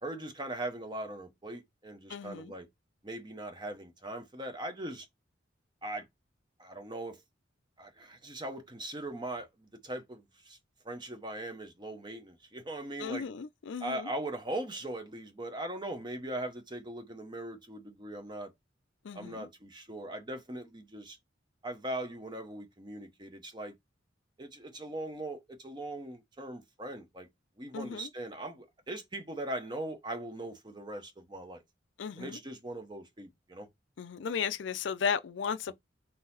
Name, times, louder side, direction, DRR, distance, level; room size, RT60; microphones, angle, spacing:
voice 1, 0.0-2.7 3.0-5.1 5.8-6.1 6.6-7.2 7.8-10.6 10.8-13.3 13.8-18.5 19.1-21.2 21.6-23.7 24.4-27.3 27.6-31.6 32.2-33.7, right 1 dB, 25° right, 0.8 m, -40 dB
voice 2, 2.1-2.5 13.0-14.1 19.0-19.5 27.7-28.1 32.0-32.4 34.0-35.7, left 6 dB, 75° left, 0.4 m, -35 dB
3.9 x 2.8 x 3.9 m
head